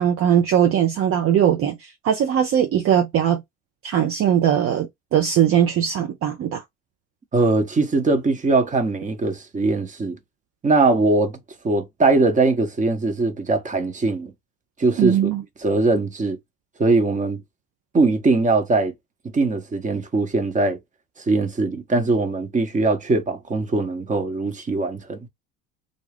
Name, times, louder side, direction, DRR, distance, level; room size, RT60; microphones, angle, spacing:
voice 1, 0.0-3.4 3.8-6.6 15.0-15.4, right 9 dB, 40° right, 0.6 m, -20 dB
voice 2, 7.3-10.2 10.6-11.4 11.6-14.3 14.8-15.3 15.6-16.4 16.8-17.4 17.9-18.9 19.3-20.8 21.3-25.2, right 3 dB, 20° right, 0.9 m, -21 dB
2.6 x 2.2 x 3.4 m
hypercardioid pair, 75°, 35 cm